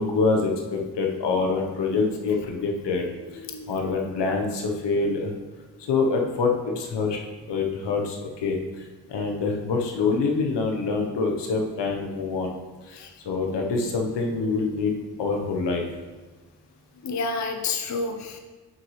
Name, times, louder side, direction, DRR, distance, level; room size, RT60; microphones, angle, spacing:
voice 1, 0.0-3.0 3.7-5.3 5.9-7.2 7.5-8.6 9.1-12.5 12.9-13.0 13.2-15.8, left 4 dB, 80° left, 1 dB, 1.1 m, -25 dB
voice 2, 3.4-3.7 13.0-13.1 17.0-18.4, left 4 dB, 40° left, 4 dB, 0.7 m, -30 dB
7.5 x 5.6 x 3.2 m, 1.3 s
cardioid pair, 60°, 41 cm